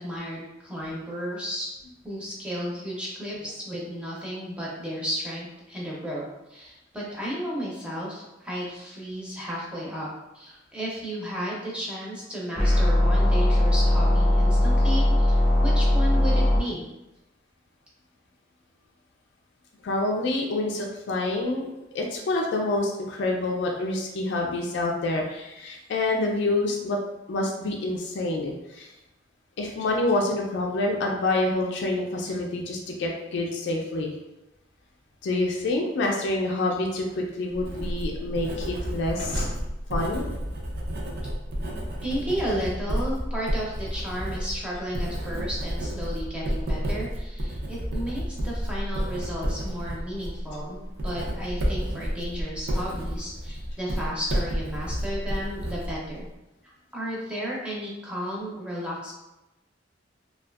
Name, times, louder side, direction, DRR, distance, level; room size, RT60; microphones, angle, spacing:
voice 1, 0.0-1.7 2.0-10.1 10.3-16.8 42.0-56.3 56.6-59.1, equal, 5° right, -5 dB, 0.6 m, -33 dB
sound 1, 12.6-16.6, left 1 dB, 40° left, 0.7 m, -20 dB
voice 2, 19.8-21.7 21.9-27.0 27.3-28.9 29.6-34.1 35.2-39.5 39.9-40.2, left 2 dB, 65° left, 0 dB, 0.3 m, -27 dB
sound 2, 35.0-35.1 36.8-38.1 38.4-39.6, right 1 dB, 75° right, 1.2 m, -41 dB
Writing, 37.5-56.3, equal, 60° right, 0.5 m, -31 dB
2.5 x 2.3 x 2.3 m, 0.97 s
head